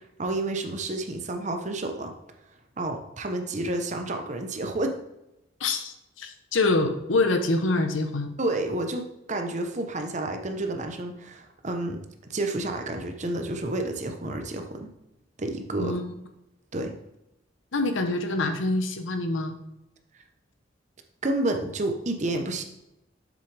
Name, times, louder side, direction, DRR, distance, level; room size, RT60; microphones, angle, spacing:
voice 1, 0.2-2.1 2.8-5.0 8.4-12.0 12.3-14.9 15.4-16.0 16.7-17.0 21.2-22.6, right 2 dB, 40° right, 5 dB, 0.8 m, -30 dB
voice 2, 5.6-8.3 15.8-16.1 17.7-19.6, left 2 dB, 90° left, 7 dB, 0.9 m, -25 dB
7.4 x 6.9 x 3.4 m, 0.89 s
head